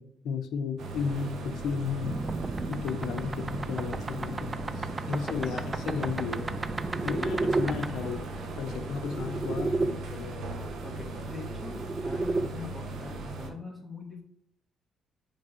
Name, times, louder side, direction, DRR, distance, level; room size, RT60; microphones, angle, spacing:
voice 1, 0.0-2.3 2.7-6.6 7.0-8.2 8.6-10.5, left 6 dB, 75° left, 7 dB, 0.8 m, -34 dB
sound 1, 0.8-13.5, right 2 dB, 70° right, 1.3 m, -38 dB
sound 2, 2.0-9.9 11.2-12.5, right 3 dB, 25° right, 0.4 m, -33 dB
voice 2, 10.8-14.2, left 2 dB, 5° left, 0 dB, 2.1 m, -42 dB
5.3 x 5.3 x 5.5 m, 0.68 s
cardioid pair, 90°, 0 cm